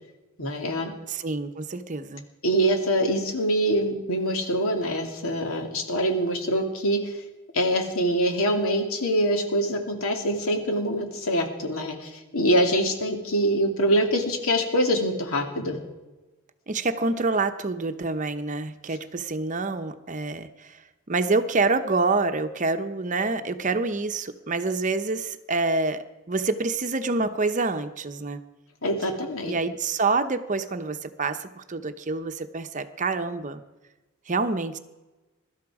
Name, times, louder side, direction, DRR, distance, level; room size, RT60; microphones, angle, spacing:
voice 1, 0.4-0.9 2.4-7.2 7.5-15.8 28.8-29.5, equal, 75° left, 3 dB, 2.5 m, -24 dB
voice 2, 1.1-2.2 16.7-20.8 21.1-28.4 29.5-33.6 34.3-34.8, right 3 dB, 35° right, 9 dB, 0.8 m, -27 dB
22.5 x 12.5 x 4.8 m, 1.1 s
head